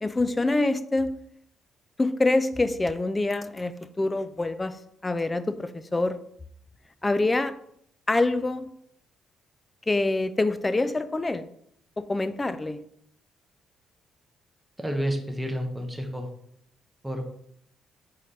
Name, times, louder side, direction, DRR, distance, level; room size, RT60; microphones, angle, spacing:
voice 1, 0.0-1.1 2.0-6.2 7.0-7.5 8.1-8.7 9.9-11.5 12.0-12.8, left 2 dB, 20° left, 12 dB, 0.3 m, -26 dB
voice 2, 14.8-16.3 17.0-17.4, equal, 5° right, 3 dB, 0.8 m, -30 dB
4.0 x 3.7 x 3.3 m, 0.70 s
cardioid pair, 90°, 0 cm